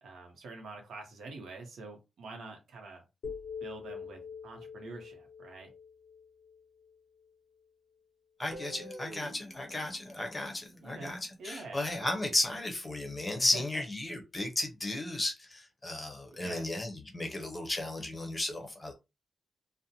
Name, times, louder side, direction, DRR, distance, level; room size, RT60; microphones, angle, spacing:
voice 1, 0.0-3.0 3.6-5.7 10.8-12.2 13.4-13.8 16.3-16.6, right 3 dB, 85° right, 0.9 m, -46 dB
sound 1, 3.2-7.3, left 6 dB, 75° left, 0.5 m, -45 dB
voice 2, 8.4-18.9, left 2 dB, 15° left, 0.6 m, -34 dB
Guitar, 8.5-11.5, equal, 35° right, 0.9 m, -49 dB
2.5 x 2.1 x 2.8 m
wide cardioid pair, 180°, 0 cm